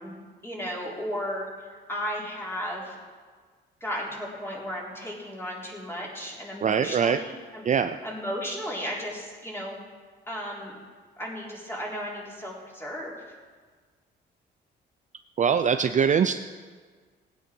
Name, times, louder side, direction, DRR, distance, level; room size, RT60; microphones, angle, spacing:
voice 1, 0.0-1.5 1.9-3.0 3.8-7.6 8.0-9.8 10.3-10.8 11.2-13.4, equal, 10° left, -4 dB, 3.8 m, -34 dB
voice 2, 6.6-7.2 7.6-8.0 15.4-16.4, right 7 dB, 40° right, 8 dB, 0.5 m, -22 dB
17.0 x 9.2 x 4.6 m, 1.5 s
cardioid pair, 90°, 20 cm